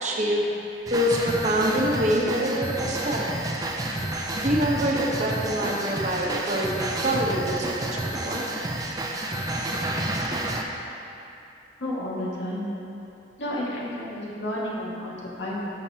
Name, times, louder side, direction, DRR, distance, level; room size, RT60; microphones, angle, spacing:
voice 1, 0.0-0.4 0.9-3.2 4.4-6.7 7.0-7.9 8.2-8.4, equal, 40° right, -2 dB, 1.0 m, -25 dB
sound 1, 0.9-10.6, right 1 dB, 20° right, 0.5 m, -30 dB
voice 2, 11.8-12.7 13.4-15.7, left 1 dB, 85° left, -6 dB, 1.8 m, -31 dB
13.0 x 6.9 x 2.8 m, 2.9 s
head